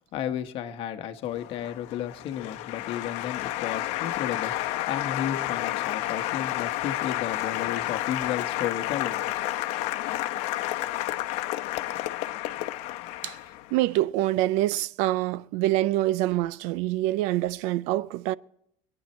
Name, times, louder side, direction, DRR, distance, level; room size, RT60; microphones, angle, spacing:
voice 1, 0.1-9.2, left 10 dB, 50° left, 1.2 m, -33 dB
Applause, 1.3-13.8, left 15 dB, 75° left, 0.9 m, -31 dB
voice 2, 13.7-18.3, right 15 dB, 75° right, 0.5 m, -25 dB
24.0 x 9.7 x 4.4 m
cardioid pair, 150°, 12 cm